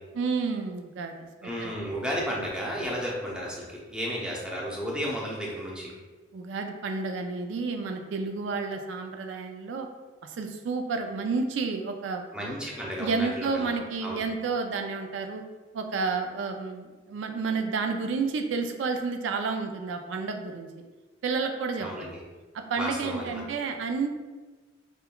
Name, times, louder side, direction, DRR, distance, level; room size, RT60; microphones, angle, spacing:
voice 1, 0.1-1.8 6.3-9.9 10.2-12.2 13.0-15.4 15.7-20.7 21.2-22.1 22.5-24.1, right 4 dB, 80° right, 5 dB, 0.3 m, -30 dB
voice 2, 1.4-5.9 12.3-14.2 21.8-22.2 22.8-23.4, equal, 5° right, -4 dB, 0.6 m, -33 dB
5.2 x 2.2 x 2.2 m, 1.3 s
head